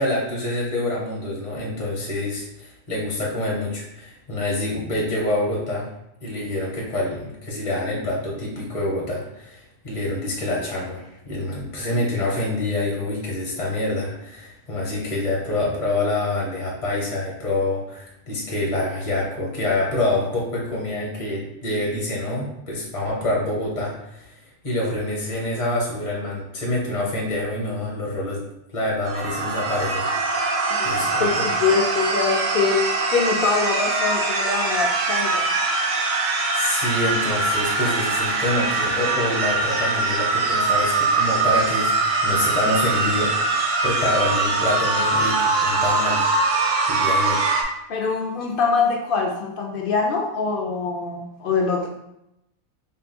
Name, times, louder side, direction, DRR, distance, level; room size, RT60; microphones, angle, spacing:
voice 1, 0.0-5.9 6.2-24.3 24.6-28.4 28.7-30.1 30.8-31.5 36.5-46.2 46.9-47.4, left 1 dB, 30° left, -3 dB, 0.8 m, -26 dB
sound 1, 29.0-47.6, right 3 dB, 90° right, 0.4 m, -22 dB
voice 2, 30.7-31.3 31.6-32.8 33.1-35.5 47.9-51.9, left 5 dB, 60° left, 1 dB, 0.5 m, -23 dB
3.7 x 2.2 x 4.2 m, 0.83 s
omnidirectional pair, 1.4 m